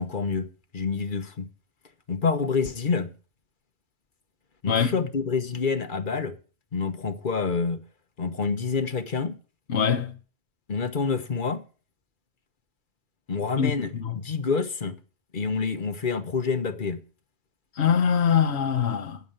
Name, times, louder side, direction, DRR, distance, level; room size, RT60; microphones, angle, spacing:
voice 1, 0.0-1.5 2.1-3.1 4.6-6.3 6.7-7.8 8.2-9.4 10.7-11.6 13.3-15.0 15.3-17.0, left 5 dB, 50° left, 1.3 m, -27 dB
voice 2, 9.7-10.1 13.6-13.7 14.0-14.1 17.8-19.2, left 7 dB, 75° left, 1.2 m, -23 dB
9.5 x 7.1 x 8.7 m
omnidirectional pair, 1.1 m